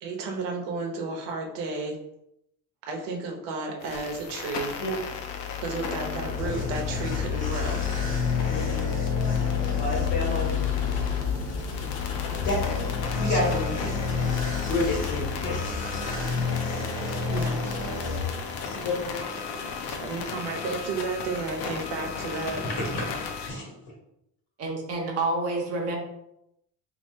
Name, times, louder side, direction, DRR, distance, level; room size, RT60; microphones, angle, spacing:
voice 1, 0.0-2.0 2.9-4.8 5.6-7.8 13.2-13.7 17.3-17.8 20.0-22.6, right 3 dB, 85° right, 2 dB, 1.0 m, -32 dB
sound 1, 3.8-23.5, left 9 dB, 90° left, 0.7 m, -32 dB
sound 2, 5.9-18.8, left 3 dB, 20° left, 0.8 m, -31 dB
voice 2, 8.5-8.9 9.8-10.7 12.4-12.5 13.2-13.5 13.8-14.2 14.7-15.7 18.6-19.2 22.6-23.0 23.4-23.7, left 1 dB, 55° left, -2 dB, 1.3 m, -30 dB
voice 3, 9.6-10.2 24.6-26.0, right 2 dB, 35° right, 1 dB, 0.7 m, -30 dB
2.8 x 2.8 x 4.3 m, 0.81 s
cardioid pair, 180°, 41 cm